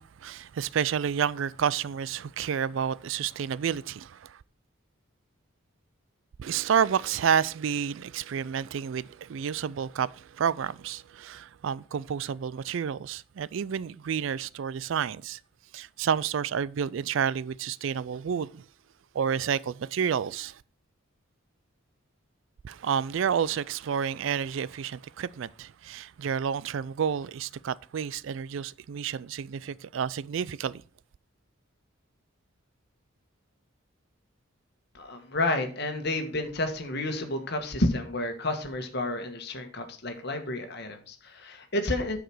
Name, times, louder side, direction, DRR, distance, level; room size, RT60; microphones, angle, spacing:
voice 1, 0.0-4.4 6.4-15.4 15.7-18.6 19.1-20.6 22.6-30.8, right 7 dB, 65° right, 0.4 m, -30 dB
voice 2, 34.9-42.2, left 2 dB, 50° left, 1.6 m, -30 dB
9.2 x 4.9 x 6.1 m
head